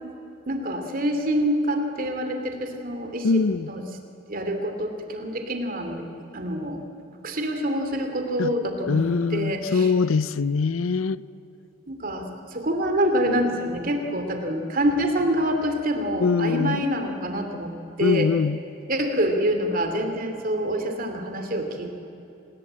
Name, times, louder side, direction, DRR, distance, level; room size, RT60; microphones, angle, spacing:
voice 1, 0.5-3.8 4.3-6.1 6.3-6.8 7.2-9.9 11.9-17.7 18.0-18.3 18.9-21.9, equal, 45° right, 2.6 m, -26 dB
voice 2, 3.2-3.7 8.4-8.5 8.9-11.2 16.2-16.8 18.0-18.6, left 4 dB, 80° left, 0.6 m, -23 dB
26.5 x 20.0 x 8.7 m
head